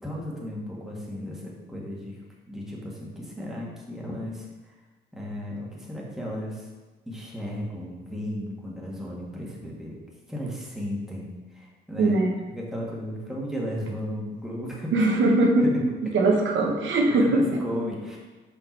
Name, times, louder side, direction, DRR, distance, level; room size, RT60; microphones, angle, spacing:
voice 1, 0.0-2.2 2.5-4.7 5.1-6.7 7.1-10.0 10.3-12.2 12.5-14.9 15.6-15.8 17.2-18.2, equal, ahead, -4 dB, 1.8 m, -34 dB
voice 2, 12.0-12.4 14.9-15.7 16.1-17.5, right 2 dB, 70° right, 0 dB, 1.1 m, -21 dB
5.2 x 4.9 x 4.6 m, 1.3 s
cardioid pair, 90°, 20 cm